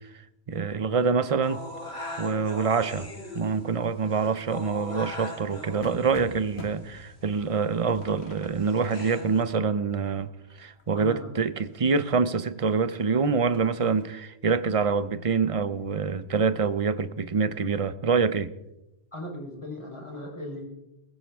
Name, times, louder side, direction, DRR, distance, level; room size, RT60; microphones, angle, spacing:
voice 1, 0.5-1.6 2.2-10.3 10.6-18.5, right 5 dB, 35° right, 0.7 m, -26 dB
sound 1, 1.4-9.4, left 1 dB, 70° left, 2.9 m, -41 dB
sound 2, 4.9-11.7 12.1-12.2 12.5-14.0, left 3 dB, 85° left, 2.3 m, -46 dB
voice 2, 10.9-11.3 19.1-20.7, left 1 dB, 25° left, 4.4 m, -38 dB
20.0 x 16.0 x 3.6 m
omnidirectional pair, 1.1 m